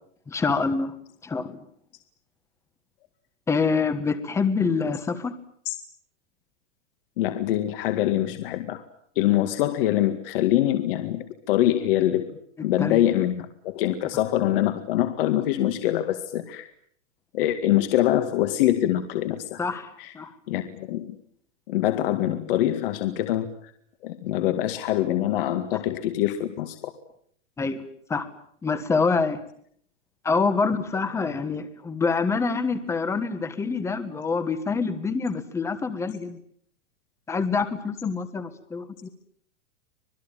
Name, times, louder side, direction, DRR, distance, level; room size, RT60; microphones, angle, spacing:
voice 1, 0.3-0.9 1.2-1.6 3.5-5.3 12.8-13.0 19.6-20.3 25.7-25.8 27.6-27.8 28.1-28.3 28.6-29.4 30.2-36.4 37.3-39.1, left 4 dB, 5° left, 11 dB, 1.4 m, -26 dB
voice 2, 7.2-8.8 9.2-12.3 12.6-16.7 17.3-20.1 20.5-21.2 21.7-23.5 24.0-26.9, left 13 dB, 50° left, 8 dB, 2.1 m, -24 dB
26.0 x 20.0 x 9.1 m, 0.65 s
supercardioid pair, 165°, 37 cm